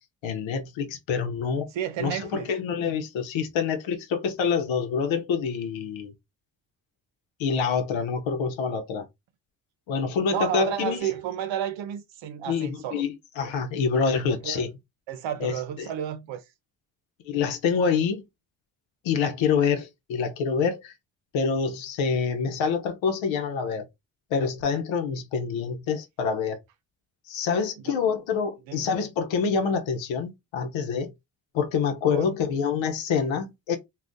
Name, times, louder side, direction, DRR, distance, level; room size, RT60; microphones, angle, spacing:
voice 1, 0.2-1.7 2.0-6.1 7.4-9.1 9.9-11.1 12.5-14.7 15.4-15.9 17.2-18.2 19.0-20.9 21.3-23.9 24.3-26.6 27.3-31.1 31.5-33.8, left 6 dB, 80° left, 0.9 m, -26 dB
voice 2, 1.7-2.5 10.3-13.0 14.4-14.7 15.1-16.4 27.9-28.0 28.7-28.9 32.1-32.4, right 10 dB, 75° right, 0.8 m, -32 dB
2.5 x 2.4 x 3.5 m
supercardioid pair, 50°, 46 cm